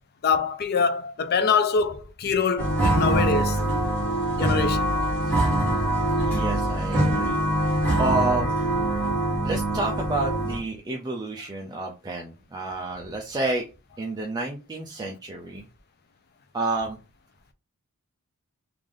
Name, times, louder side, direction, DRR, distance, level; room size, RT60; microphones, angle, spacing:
voice 1, 0.2-3.6 4.3-4.9, left 5 dB, 45° left, 0.4 m, -24 dB
sound 1, 2.6-10.6, right 1 dB, 10° left, 1.5 m, -24 dB
voice 2, 6.2-8.5 9.4-13.6 14.0-15.7 16.5-17.0, right 2 dB, 20° right, 0.4 m, -30 dB
3.2 x 2.5 x 3.7 m
head